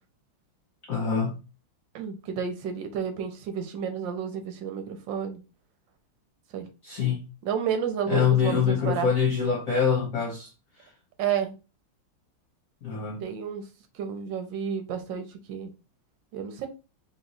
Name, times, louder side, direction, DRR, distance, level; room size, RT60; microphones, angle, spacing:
voice 1, 0.9-1.4 6.8-7.2 8.1-10.5 10.8-10.9 12.8-13.2, left 7 dB, 55° left, 1.0 m, -25 dB
voice 2, 1.9-5.4 6.5-6.7 7.4-9.1 11.2-11.5 13.2-13.7 13.9-15.7 16.3-16.7, right 7 dB, 70° right, 1.4 m, -31 dB
3.7 x 3.1 x 3.9 m
omnidirectional pair, 2.2 m